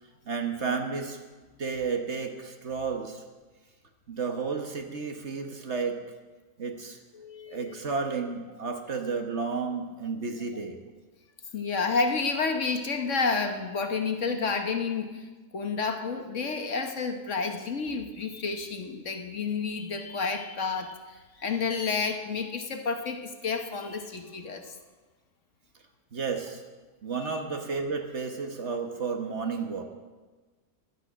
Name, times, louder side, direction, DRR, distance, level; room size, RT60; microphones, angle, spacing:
voice 1, 0.3-1.2 1.6-3.2 4.1-6.0 6.6-7.0 7.5-10.8 26.1-26.6 27.0-29.8, right 5 dB, 50° right, 4 dB, 1.4 m, -32 dB
voice 2, 7.1-7.8 11.5-24.8 27.1-27.4, left 4 dB, 55° left, 6 dB, 1.3 m, -30 dB
15.5 x 11.0 x 6.2 m, 1.3 s
omnidirectional pair, 1.6 m